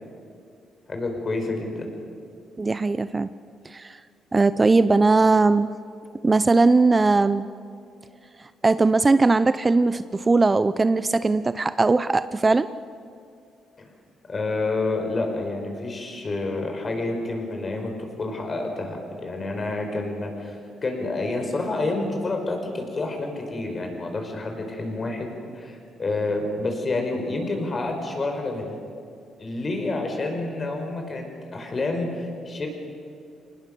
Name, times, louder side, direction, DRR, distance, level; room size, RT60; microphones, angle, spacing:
voice 1, 0.9-1.9 14.3-28.8 29.4-31.3 31.5-32.7, left 2 dB, 35° left, 3 dB, 4.9 m, -28 dB
voice 2, 2.6-3.3 3.6-4.0 4.3-5.7 6.2-7.5 8.4-12.7, right 3 dB, 25° right, 14 dB, 0.5 m, -19 dB
25.0 x 19.5 x 6.9 m, 2.4 s
cardioid pair, 90°, 0 cm